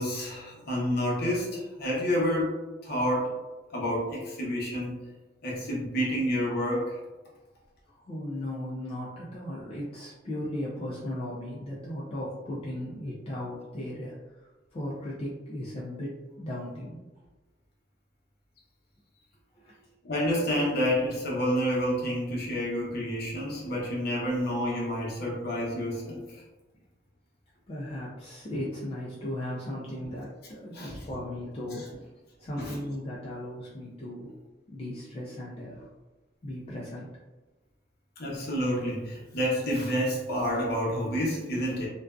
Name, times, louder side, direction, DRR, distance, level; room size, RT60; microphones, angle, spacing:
voice 1, 0.0-2.6 2.8-3.4 3.7-5.0 5.4-7.0 20.0-26.4 30.7-31.0 32.6-32.8 38.2-41.9, equal, 55° left, -4 dB, 0.8 m, -29 dB
voice 2, 7.9-14.4 14.7-17.1 19.6-19.8 27.7-32.1 32.4-34.4 34.7-35.9 36.4-37.1, left 1 dB, 30° left, -6 dB, 0.4 m, -37 dB
2.5 x 2.2 x 2.3 m, 1.1 s
head